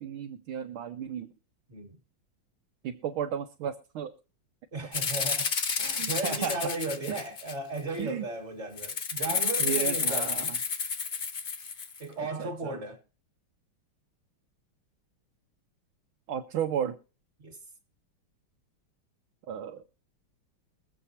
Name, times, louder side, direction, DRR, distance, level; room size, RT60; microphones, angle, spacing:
voice 1, 0.0-1.3 2.8-4.1 6.0-6.6 7.1-7.2 8.0-8.3 9.3-10.6 12.2-12.8 16.3-17.0 19.5-19.8, right 9 dB, 85° right, 1.7 m, -34 dB
voice 2, 4.7-5.5 5.8-10.5 12.0-13.0 17.4-17.6, right 2 dB, 35° right, 1.9 m, -36 dB
Rattle (instrument), 4.9-7.8 8.8-12.0, left 5 dB, 65° left, 0.5 m, -30 dB
23.0 x 7.9 x 2.8 m
omnidirectional pair, 2.3 m